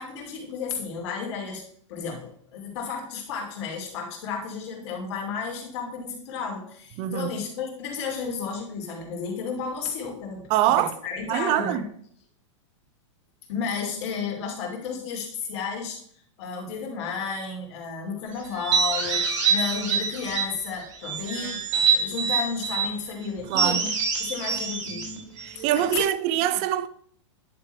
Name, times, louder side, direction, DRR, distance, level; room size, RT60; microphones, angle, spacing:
voice 1, 0.0-1.6 1.9-11.9 13.5-16.0 16.4-23.9 24.2-25.1 25.5-26.4, left 5 dB, 60° left, 2.8 m, -33 dB
voice 2, 7.0-7.3 10.5-10.9 11.3-11.8 23.5-23.8 25.4-26.9, right 12 dB, 40° right, 0.5 m, -24 dB
sound 1, 18.5-20.6 21.0-22.9 23.5-26.0, right 6 dB, 70° right, 2.3 m, -26 dB
10.5 x 3.7 x 4.5 m
hypercardioid pair, 125°, 16 cm